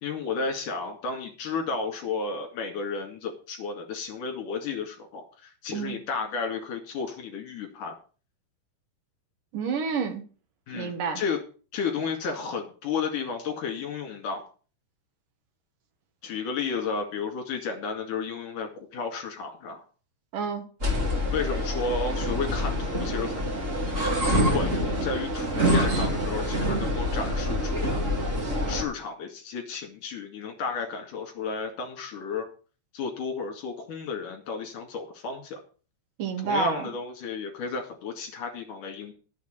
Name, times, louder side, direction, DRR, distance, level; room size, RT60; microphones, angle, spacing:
voice 1, 0.0-7.9 10.7-11.4 11.7-14.4 16.2-19.8 21.3-23.4 24.2-28.1 28.7-32.5 32.9-35.6 36.4-39.1, left 5 dB, 50° left, 3 dB, 3.2 m, -32 dB
voice 2, 9.5-10.2 10.7-11.2 20.3-20.6 36.2-36.9, right 5 dB, 60° right, 5 dB, 2.3 m, -29 dB
sound 1, 20.8-28.8, equal, 30° right, 1.5 m, -26 dB
11.5 x 7.3 x 6.6 m, 0.38 s
omnidirectional pair, 5.6 m